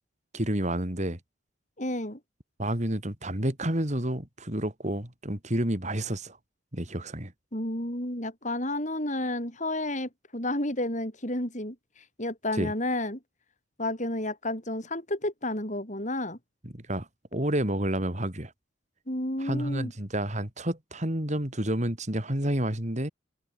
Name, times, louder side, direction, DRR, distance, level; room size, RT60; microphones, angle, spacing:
voice 1, 0.3-1.2 2.6-6.4 6.7-7.3 12.5-12.7 16.6-18.5 19.4-23.1, right 1 dB, 35° right, 3.4 m, -30 dB
voice 2, 1.8-2.2 7.5-11.8 12.2-13.2 13.8-16.4 19.1-19.9, left 1 dB, 40° left, 7.6 m, -31 dB
head